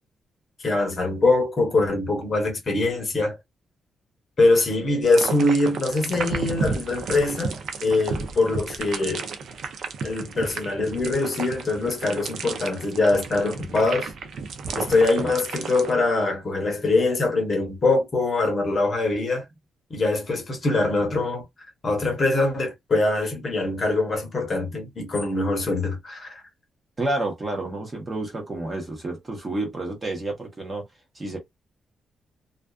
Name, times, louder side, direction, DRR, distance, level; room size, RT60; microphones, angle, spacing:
voice 1, 0.6-3.4 4.4-9.2 10.0-14.1 14.8-19.4 19.9-21.4 21.8-26.4, left 2 dB, 30° left, 0.8 m, -23 dB
sound 1, 5.0-15.9, right 5 dB, 55° right, 0.4 m, -33 dB
voice 2, 27.0-30.9 31.1-31.4, right 2 dB, 20° right, 0.8 m, -30 dB
2.4 x 2.3 x 2.2 m
wide cardioid pair, 180°, 0 cm